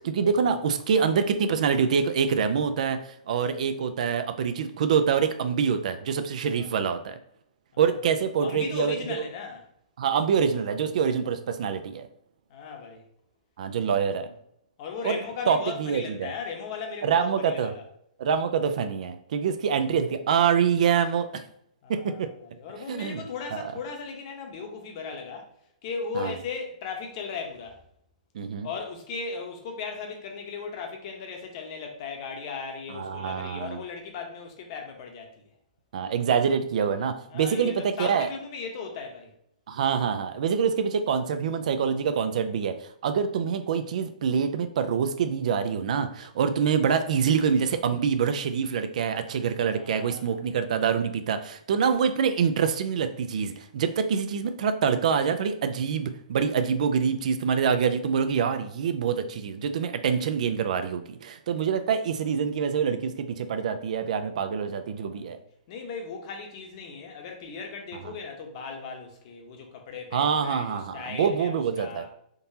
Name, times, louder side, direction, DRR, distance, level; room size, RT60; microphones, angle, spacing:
voice 1, 0.0-7.2 7.8-9.0 10.0-12.1 13.6-14.3 15.0-15.2 15.5-16.3 17.0-17.7 18.2-21.4 21.9-22.3 22.9-23.2 26.1-26.3 28.3-28.7 32.9-33.8 35.9-38.3 39.7-42.8 43.0-65.4 70.1-72.0, right 6 dB, 60° right, 9 dB, 0.3 m, -25 dB
voice 2, 6.5-6.9 8.4-9.7 12.5-13.0 14.1-14.2 14.8-17.8 21.8-25.5 25.8-27.8 28.6-35.3 37.3-39.3 49.7-50.4 65.1-65.4 65.7-72.1, left 5 dB, 40° left, 3 dB, 0.8 m, -37 dB
3.7 x 2.8 x 2.7 m, 0.72 s
hypercardioid pair, 155°, 4 cm